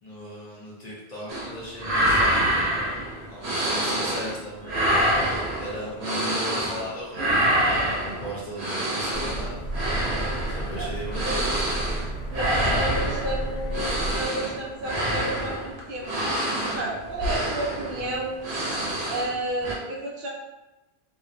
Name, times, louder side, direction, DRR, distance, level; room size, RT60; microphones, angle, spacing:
voice 1, 0.0-2.4 3.3-5.0 5.5-9.6 10.5-11.5, equal, 50° left, -6 dB, 0.6 m, -37 dB
sound 1, 1.3-1.5 1.8-4.4 4.6-6.9 7.1-19.4 19.6-19.7, right 1 dB, 85° right, 0.9 m, -26 dB
sound 2, 9.1-14.3, right 1 dB, 85° left, 0.9 m, -32 dB
voice 2, 10.8-11.5 12.3-16.1 16.6-18.4 19.1-20.3, right 1 dB, 65° right, -3 dB, 0.7 m, -32 dB
2.7 x 2.1 x 2.5 m, 1.0 s
omnidirectional pair, 1.1 m